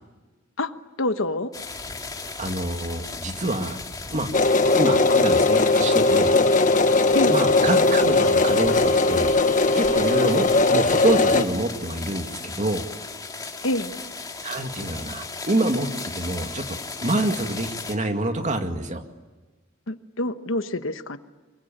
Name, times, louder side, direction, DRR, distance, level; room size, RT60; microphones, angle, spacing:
voice 1, 1.0-1.5 7.1-7.4 13.6-13.9 19.9-21.2, left 1 dB, 80° left, 10 dB, 1.2 m, -26 dB
sound 1, 1.5-17.9, left 4 dB, 20° left, 2.1 m, -36 dB
voice 2, 2.4-3.8 4.1-4.3 4.7-6.3 7.3-9.3 9.7-12.8 14.4-19.0, right 1 dB, 40° right, 6 dB, 2.2 m, -26 dB
sound 2, 4.3-11.4, left 3 dB, 40° left, 1.2 m, -19 dB
25.0 x 23.5 x 8.9 m, 1.3 s
head